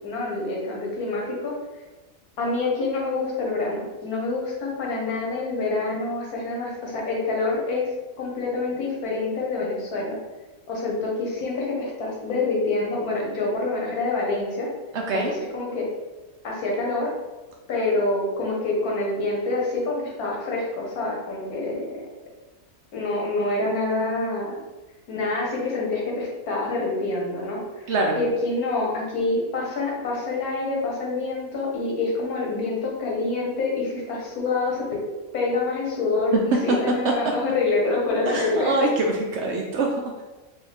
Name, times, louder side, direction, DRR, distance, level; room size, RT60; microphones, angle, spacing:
voice 1, 0.0-1.5 2.4-7.9 8.2-10.2 10.7-14.7 15.1-15.2 15.5-15.9 16.4-17.1 17.7-21.9 22.9-24.6 25.1-35.0 35.3-36.4 36.6-38.8, left 3 dB, 90° left, -2 dB, 1.5 m, -26 dB
voice 2, 14.9-15.3 27.9-28.2 36.3-36.4 36.7-36.8 37.0-37.1 38.3-40.2, right 2 dB, 65° right, 0 dB, 0.7 m, -24 dB
4.2 x 2.7 x 3.4 m, 1.1 s
omnidirectional pair, 1.5 m